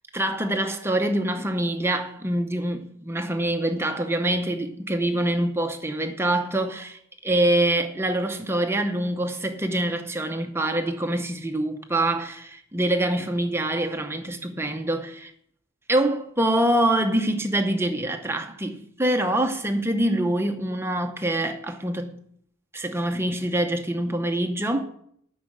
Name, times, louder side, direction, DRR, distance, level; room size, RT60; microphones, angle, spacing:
voice 1, 0.1-15.3 15.9-22.3 22.7-24.9, right 1 dB, 10° right, 0.7 m, -25 dB
10.0 x 6.3 x 7.8 m
head